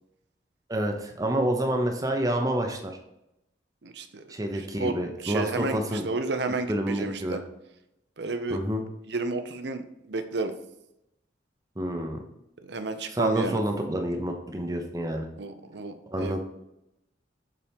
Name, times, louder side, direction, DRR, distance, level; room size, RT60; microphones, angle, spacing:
voice 1, 0.7-2.9 4.3-6.0 6.7-7.4 8.5-8.8 11.8-12.2 13.1-15.3 16.1-16.4, right 1 dB, 20° right, 3 dB, 0.7 m, -28 dB
voice 2, 3.8-7.4 8.2-8.6 9.1-10.5 12.6-13.6 15.4-16.4, right 3 dB, 70° right, 8 dB, 0.7 m, -32 dB
6.9 x 4.4 x 3.5 m, 0.85 s
head